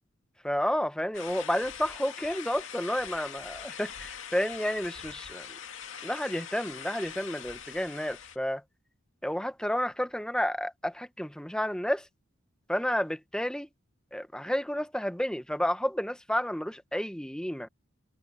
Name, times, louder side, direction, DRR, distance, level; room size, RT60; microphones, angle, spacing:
voice 1, 0.4-5.6 6.0-8.6 9.2-12.1 12.7-13.7 14.1-17.7, equal, 5° left, 1.0 m, -31 dB
sound 1, 1.1-8.4, left 8 dB, 70° left, 2.3 m, -43 dB
head